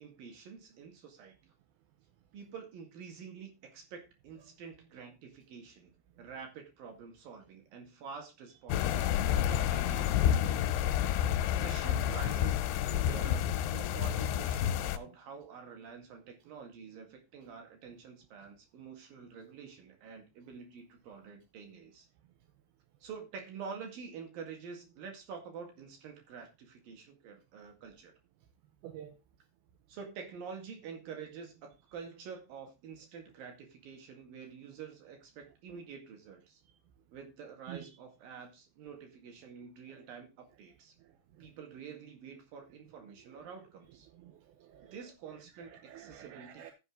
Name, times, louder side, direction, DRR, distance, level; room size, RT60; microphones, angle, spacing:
voice 1, 0.0-1.3 2.3-5.9 6.2-10.6 11.6-22.1 23.0-28.1 29.9-36.6 37.1-40.9 41.4-44.1 44.9-46.7, right 6 dB, 55° right, 4 dB, 3.4 m, -48 dB
sound 1, 8.7-15.0, left 10 dB, 85° left, 3.0 m, -29 dB
voice 2, 28.8-29.1 37.7-37.9 44.1-44.9 45.6-46.7, right 11 dB, 75° right, 5 dB, 2.5 m, -49 dB
14.5 x 5.4 x 3.8 m, 0.26 s
omnidirectional pair, 5.3 m